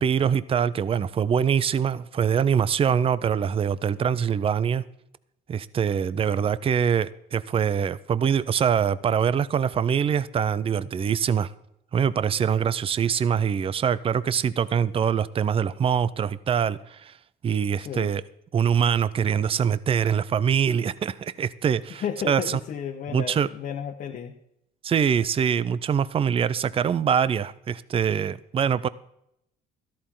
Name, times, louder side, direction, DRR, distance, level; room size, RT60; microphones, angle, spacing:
voice 1, 0.0-4.8 5.5-11.5 11.9-17.1 17.4-18.2 18.5-22.6 23.1-23.5 24.8-28.9, right 7 dB, 35° right, 17 dB, 0.6 m, -24 dB
voice 2, 17.8-18.1 22.0-24.3, left 8 dB, 55° left, 2 dB, 1.3 m, -33 dB
13.5 x 13.0 x 3.9 m, 0.76 s
cardioid pair, 110°, 17 cm